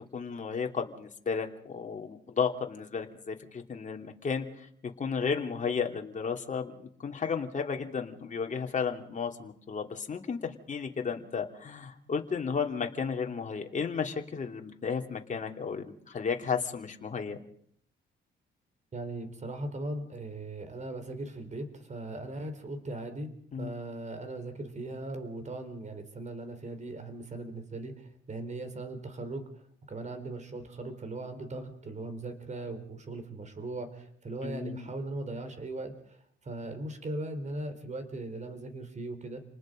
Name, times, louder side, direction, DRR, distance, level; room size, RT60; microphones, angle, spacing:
voice 1, 0.0-4.4 4.8-17.4 23.5-23.7 34.4-34.9, left 6 dB, 40° left, 3 dB, 3.0 m, -33 dB
voice 2, 18.9-23.3 23.6-29.5 29.9-39.4, right 2 dB, 35° right, 9 dB, 4.2 m, -39 dB
29.5 x 20.0 x 5.2 m, 0.64 s
cardioid pair, 90°, 20 cm